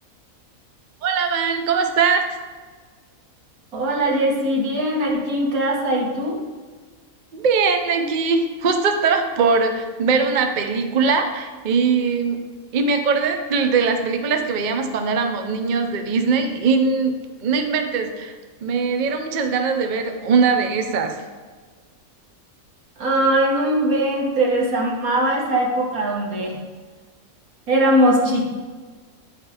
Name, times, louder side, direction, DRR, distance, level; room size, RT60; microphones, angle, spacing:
voice 1, 1.0-2.2 7.3-12.4 12.7-18.3 18.6-21.2, right 5 dB, 55° right, 5 dB, 0.5 m, -21 dB
voice 2, 3.7-6.4 23.0-26.6 27.7-28.5, right 1 dB, 80° right, -2 dB, 1.8 m, -20 dB
9.2 x 3.3 x 4.7 m, 1.4 s
omnidirectional pair, 1.5 m